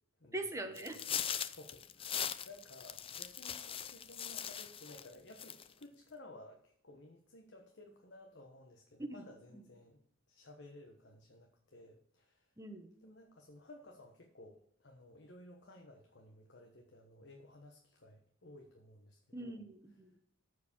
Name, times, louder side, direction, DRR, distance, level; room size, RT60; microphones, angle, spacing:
voice 1, 0.3-1.0 9.0-9.2 9.5-9.6 12.6-12.9 19.3-20.2, right 2 dB, 15° right, 6 dB, 1.1 m, -42 dB
sound 1, 0.8-5.1 5.4-5.8, left 8 dB, 25° left, 0.5 m, -40 dB
voice 2, 1.4-10.0 10.3-12.5 13.0-19.6, left 1 dB, 60° left, 2 dB, 1.2 m, -56 dB
14.0 x 4.9 x 7.2 m, 0.69 s
head